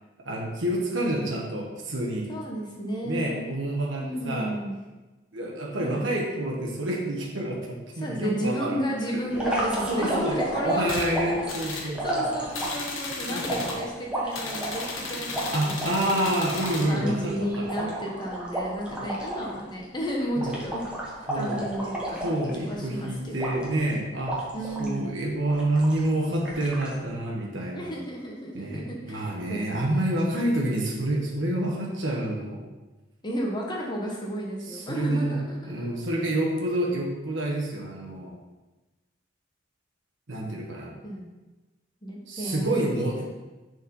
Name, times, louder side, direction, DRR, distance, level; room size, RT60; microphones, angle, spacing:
voice 1, 0.2-2.3 3.0-4.5 5.3-8.8 9.1-12.2 13.3-13.7 15.5-18.0 20.4-20.6 21.3-21.6 22.2-24.4 24.8-27.9 28.5-32.6 34.7-35.4 35.7-38.4 40.3-40.9 42.3-43.3, right 1 dB, 70° right, -2 dB, 1.2 m, -28 dB
voice 2, 2.3-3.5 4.0-4.7 5.8-6.5 7.9-16.3 16.9-22.3 22.6-23.5 24.5-25.1 27.7-30.4 33.2-35.9 41.0-41.3 42.0-43.1, equal, 20° left, -2 dB, 1.1 m, -33 dB
sound 1, 9.3-12.9 13.4-16.0 16.3-16.4 16.6-19.6 19.8-20.0 20.4-22.9 23.4-23.9 24.3-25.0 25.5-26.1 26.5-27.0, right 1 dB, 5° right, 1.3 m, -31 dB
sound 2, 10.8-11.1 11.5-11.9 12.5-13.8 14.3-16.9, left 3 dB, 80° left, 1.3 m, -34 dB
7.0 x 4.5 x 5.4 m, 1.2 s
head